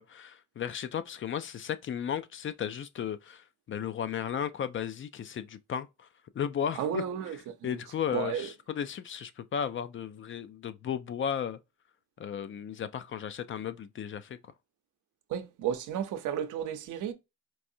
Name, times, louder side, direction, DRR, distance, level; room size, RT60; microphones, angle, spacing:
voice 1, 0.0-6.1 6.3-7.0 7.6-11.6 12.2-14.5, left 8 dB, 40° left, 0.4 m, -35 dB
voice 2, 6.8-7.8 8.1-8.5 15.3-17.1, right 9 dB, 80° right, 0.7 m, -33 dB
4.6 x 2.6 x 2.6 m
cardioid pair, 90°, 30 cm